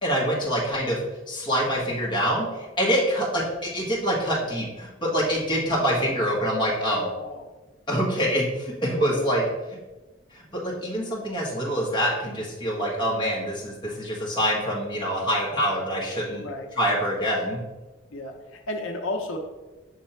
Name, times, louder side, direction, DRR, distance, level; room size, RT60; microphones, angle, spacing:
voice 1, 0.0-1.0 1.3-7.1 7.9-9.4 10.3-16.4 16.8-17.6, equal, 25° left, -4 dB, 1.4 m, -25 dB
voice 2, 6.9-7.5 9.1-9.3 16.4-16.7 18.1-19.4, left 2 dB, 85° left, 3 dB, 0.7 m, -33 dB
6.7 x 3.4 x 4.4 m, 1.1 s
head